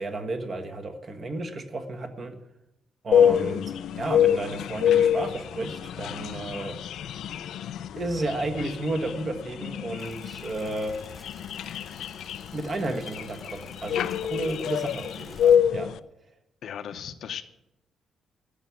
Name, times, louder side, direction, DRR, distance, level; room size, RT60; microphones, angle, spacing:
voice 1, 0.0-2.4 3.0-6.8 8.0-10.9 12.5-15.9, right 2 dB, 30° right, 7 dB, 1.4 m, -32 dB
sound 1, 3.1-16.0, left 9 dB, 75° left, 0.5 m, -26 dB
sound 2, 10.0-15.6, left 1 dB, 5° right, 1.5 m, -50 dB
voice 2, 16.6-17.4, left 8 dB, 60° left, 9 dB, 0.8 m, -36 dB
13.5 x 7.1 x 9.2 m, 0.87 s
cardioid pair, 165°, 0 cm